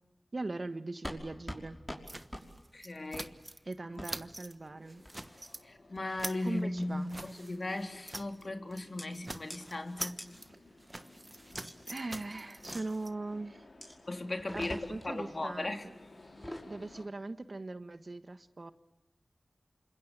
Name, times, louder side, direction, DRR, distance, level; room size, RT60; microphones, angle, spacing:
voice 1, 0.3-1.8 3.6-5.0 6.4-7.1 11.9-13.6 14.5-15.9 16.6-18.7, right 2 dB, 55° right, 10 dB, 1.5 m, -40 dB
sound 1, 1.0-1.2 1.5-1.6 1.9-2.0 2.3-2.5 3.1-3.3 4.0-4.1 5.0-5.4 6.0-6.3 6.8-7.1 7.9-8.2 9.0-9.1 9.5-9.6 10.2-10.3 11.5-11.7 12.7-12.9 13.8-14.0 14.4-15.1 16.3-16.7, equal, 10° left, 5.6 m, -44 dB
sound 2, 2.1-4.5 4.9-5.6 6.0-8.5 8.7-8.9 9.1-13.1, right 1 dB, 25° right, 1.3 m, -45 dB
voice 2, 2.7-3.3 5.6-10.2 14.1-15.9, left 2 dB, 50° left, 4 dB, 3.5 m, -37 dB
sound 3, 3.6-17.1, left 2 dB, 70° left, 5.7 m, -58 dB
28.0 x 26.0 x 8.1 m, 0.94 s
cardioid pair, 50°, 0 cm